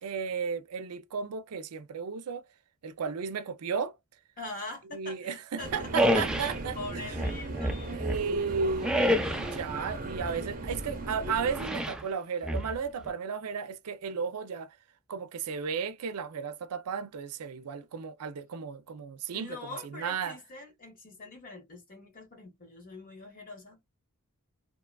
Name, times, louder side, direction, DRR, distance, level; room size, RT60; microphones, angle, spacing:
voice 1, 0.0-2.4 2.8-4.0 4.9-6.8 7.9-14.8 15.1-20.4, right 6 dB, 80° right, 0.5 m, -34 dB
voice 2, 4.4-8.0 19.3-23.8, left 2 dB, 40° left, 1.3 m, -44 dB
sound 1, 5.6-11.7, right 2 dB, 40° right, 0.8 m, -38 dB
sound 2, 6.0-6.6 7.1-8.3 8.8-9.6 11.5-12.0 12.4-13.1, equal, 5° right, 0.3 m, -28 dB
2.9 x 2.2 x 2.2 m
head